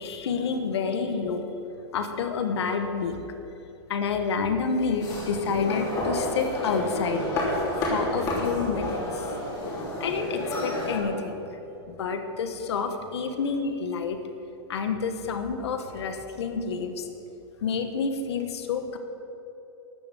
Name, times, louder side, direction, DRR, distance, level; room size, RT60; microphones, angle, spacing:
voice 1, 0.0-1.4 1.9-3.2 3.9-9.3 10.0-14.2 14.7-17.1 17.6-19.0, left 5 dB, 70° left, 6 dB, 1.3 m, -29 dB
sound 1, 5.0-11.0, left 1 dB, 25° left, 3.0 m, -30 dB
13.0 x 7.0 x 8.3 m, 2.9 s
supercardioid pair, 175°, 14 cm